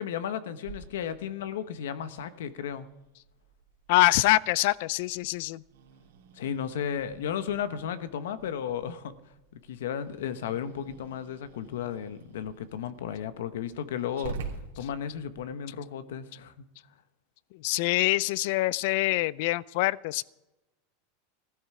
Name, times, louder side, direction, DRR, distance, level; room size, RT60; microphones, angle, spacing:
voice 1, 0.0-2.9 6.3-9.1 9.7-14.4 14.8-16.7, left 8 dB, 85° left, 12 dB, 1.1 m, -34 dB
Growling, 0.6-15.4, right 5 dB, 90° right, 2.9 m, -48 dB
voice 2, 3.9-5.6 17.6-20.2, left 19 dB, 65° left, 22 dB, 0.4 m, -25 dB
15.5 x 13.0 x 4.9 m, 0.98 s
supercardioid pair, 130°, 0 cm